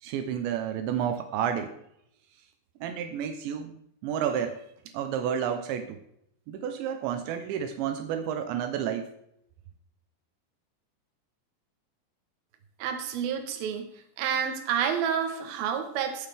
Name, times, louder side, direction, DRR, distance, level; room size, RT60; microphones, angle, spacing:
voice 1, 0.0-1.7 2.8-3.7 4.0-4.6 4.9-6.0 6.5-9.1, right 8 dB, 80° right, 7 dB, 3.0 m, -30 dB
voice 2, 12.8-13.9 14.2-16.3, right 8 dB, 65° right, 5 dB, 2.9 m, -29 dB
19.5 x 7.4 x 3.5 m, 0.76 s
omnidirectional pair, 5.2 m